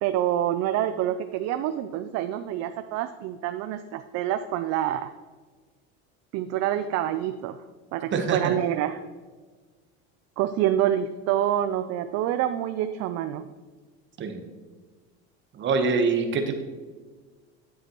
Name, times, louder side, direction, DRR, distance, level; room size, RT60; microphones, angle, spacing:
voice 1, 0.0-5.1 6.3-7.6 7.9-9.0 10.4-13.4, right 11 dB, 50° right, 10 dB, 0.4 m, -27 dB
voice 2, 8.1-8.5 14.2-14.4 15.5-16.6, right 4 dB, 35° right, 5 dB, 1.1 m, -25 dB
9.4 x 7.5 x 3.0 m, 1.4 s
supercardioid pair, 125°, 33 cm